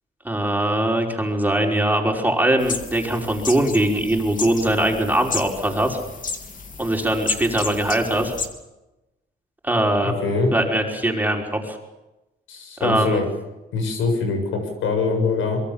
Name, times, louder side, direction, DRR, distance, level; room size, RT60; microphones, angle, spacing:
voice 1, 0.2-6.0 6.8-8.3 9.6-10.2 10.5-11.8 12.8-13.2, right 1 dB, 10° right, 1 dB, 5.3 m, -21 dB
sound 1, 2.6-8.5, left 4 dB, 40° left, 3.2 m, -32 dB
voice 2, 10.2-10.5 12.5-13.3 13.7-15.6, left 4 dB, 85° left, 5 dB, 7.5 m, -23 dB
26.0 x 23.0 x 7.3 m, 0.99 s
cardioid pair, 90°, 20 cm